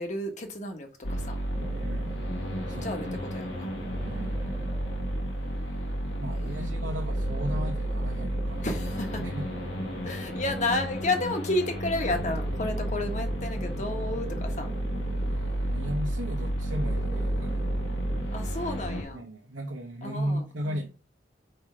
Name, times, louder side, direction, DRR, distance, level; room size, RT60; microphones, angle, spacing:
voice 1, 0.0-1.4 2.8-3.7 6.3-7.0 8.6-9.2 10.0-14.7 18.3-19.3 20.0-20.9, left 2 dB, 40° left, 1.3 m, -32 dB
sound 1, 1.0-19.0, right 1 dB, 75° left, 1.8 m, -31 dB
sound 2, 1.5-5.7 6.8-11.5 12.1-16.1 16.7-18.4, right 1 dB, 20° right, 0.8 m, -42 dB
voice 2, 1.7-2.2 2.7-3.2 4.0-4.6 6.2-8.7 9.2-9.5 10.0-10.2 15.2-17.7 19.1-21.0, equal, 90° right, 1.1 m, -36 dB
4.9 x 4.4 x 5.2 m
head